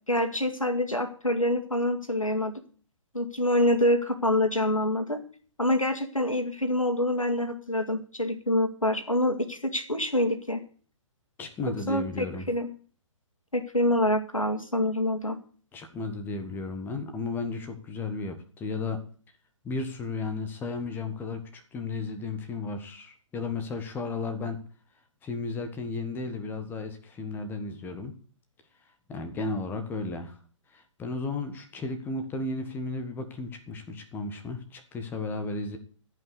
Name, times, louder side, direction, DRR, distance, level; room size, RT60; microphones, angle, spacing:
voice 1, 0.1-2.6 3.1-5.2 5.6-10.6 11.9-12.7 13.5-15.4, left 1 dB, 85° left, 6 dB, 2.3 m, -26 dB
voice 2, 11.4-12.5 15.7-19.0 19.6-24.6 25.2-28.1 29.1-30.3 30.7-35.8, left 3 dB, 10° left, 7 dB, 1.5 m, -34 dB
14.5 x 5.8 x 8.4 m, 0.42 s
figure-of-eight pair, 125°, 17 cm